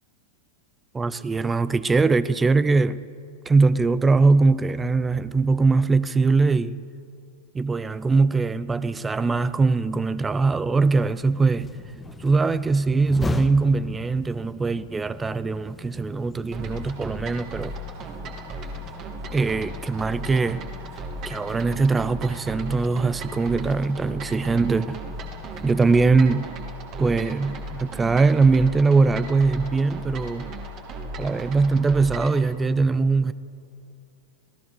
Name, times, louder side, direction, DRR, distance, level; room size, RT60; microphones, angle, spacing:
voice 1, 0.9-3.0 3.5-6.8 7.5-11.7 12.2-17.7 19.3-20.6 21.2-25.0 25.6-26.5 27.0-30.5 31.2-33.3, right 4 dB, 15° right, 0.6 m, -21 dB
sound 1, 10.8-25.7, left 3 dB, 10° left, 1.3 m, -40 dB
sound 2, 16.5-32.4, right 1 dB, 35° right, 3.1 m, -36 dB
26.5 x 18.0 x 6.9 m
figure-of-eight pair, 90°, 0 cm